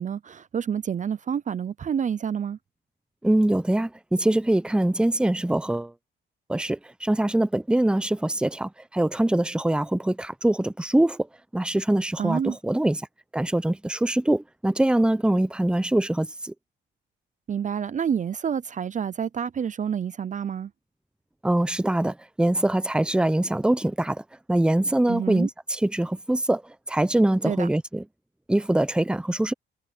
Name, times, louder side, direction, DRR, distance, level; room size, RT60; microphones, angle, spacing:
voice 1, 0.0-2.6 12.2-12.6 17.5-20.7 25.1-25.5 27.4-27.7, right 7 dB, 40° right, 0.6 m, -28 dB
voice 2, 3.2-5.9 6.5-11.3 11.5-13.0 13.3-16.5 21.4-24.2 24.5-28.0 28.5-29.5, right 1 dB, 5° right, 0.8 m, -23 dB
cardioid pair, 90°, 20 cm